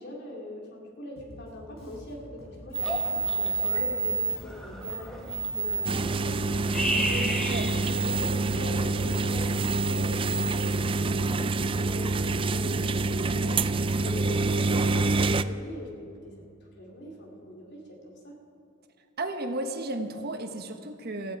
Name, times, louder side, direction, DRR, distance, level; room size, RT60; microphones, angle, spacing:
voice 1, 0.0-11.5 11.8-18.4, left 1 dB, 55° left, -1 dB, 3.0 m, -42 dB
Bass guitar, 1.2-11.0, equal, 90° left, 4.9 m, -48 dB
sound 1, 2.7-10.7, right 3 dB, 5° left, 1.6 m, -31 dB
sound 2, 5.8-15.4, right 3 dB, 25° right, 0.4 m, -27 dB
voice 2, 19.2-21.4, right 2 dB, 50° right, 6 dB, 1.2 m, -33 dB
17.0 x 15.0 x 4.8 m, 2.6 s
head